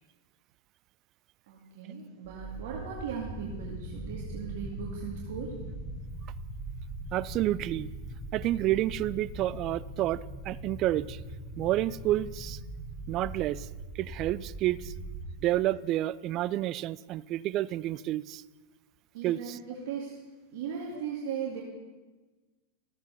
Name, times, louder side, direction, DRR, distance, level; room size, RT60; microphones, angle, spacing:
voice 1, 1.5-5.6 19.1-20.2 20.5-21.6, right 6 dB, 60° right, -2 dB, 2.1 m, -38 dB
sound 1, 2.2-15.5, right 2 dB, 20° right, 2.4 m, -41 dB
voice 2, 7.1-7.9 8.3-11.2 11.6-12.6 13.1-13.7 14.0-14.9 15.4-18.4 19.2-19.4, right 14 dB, 40° right, 19 dB, 0.4 m, -29 dB
14.0 x 8.2 x 6.7 m, 1.3 s
hypercardioid pair, 100°, 0 cm